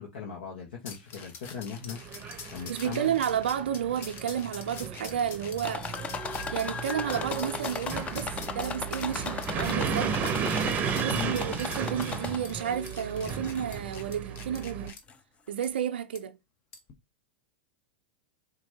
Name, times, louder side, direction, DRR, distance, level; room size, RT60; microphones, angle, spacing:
voice 1, 0.0-2.0 2.5-3.1 11.1-11.6, left 7 dB, 70° left, 1.1 m, -38 dB
sound 1, 0.8-15.0 15.6-15.7 16.1-16.2 16.7-16.9, left 5 dB, 40° left, 1.0 m, -46 dB
sound 2, 1.9-14.9, right 6 dB, 30° right, 0.6 m, -34 dB
voice 2, 2.7-5.9 6.2-10.2 11.0-14.9 15.5-16.4, right 9 dB, 80° right, 0.4 m, -31 dB
sound 3, 5.6-12.7 13.2-13.8 14.6-14.7 15.1-15.2, left 5 dB, 20° left, 0.6 m, -37 dB
4.3 x 2.6 x 2.7 m
hypercardioid pair, 105°, 6 cm